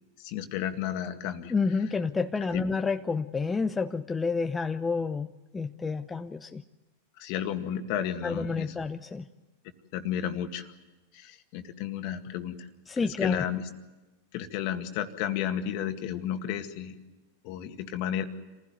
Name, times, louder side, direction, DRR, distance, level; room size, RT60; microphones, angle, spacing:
voice 1, 0.2-1.5 2.5-2.7 7.2-8.7 9.9-10.7 11.1-12.7 13.0-13.7 14.3-17.0 17.4-18.2, left 10 dB, 55° left, 7 dB, 2.0 m, -32 dB
voice 2, 1.5-5.3 5.5-6.6 8.2-9.2 12.9-13.4, left 4 dB, 15° left, 7 dB, 0.8 m, -29 dB
26.0 x 16.0 x 9.5 m, 1.1 s
hypercardioid pair, 100°, 0 cm